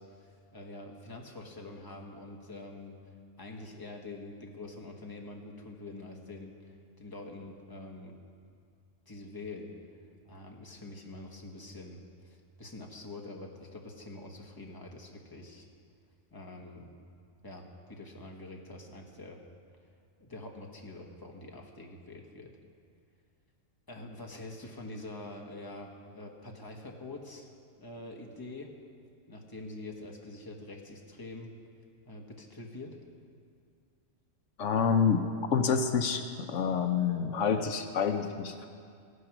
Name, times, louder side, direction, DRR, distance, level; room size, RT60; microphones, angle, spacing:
voice 1, 0.0-3.0 3.4-8.2 9.1-9.7 10.2-15.7 16.3-16.9 17.4-19.4 20.2-22.6 23.9-27.5 27.8-28.8 29.3-31.5 32.0-33.0, left 2 dB, 15° left, 0 dB, 1.2 m, -45 dB
voice 2, 34.6-35.3 35.5-36.2 36.5-38.7, left 6 dB, 70° left, 7 dB, 1.0 m, -27 dB
15.0 x 9.7 x 6.0 m, 2.3 s
omnidirectional pair, 1.4 m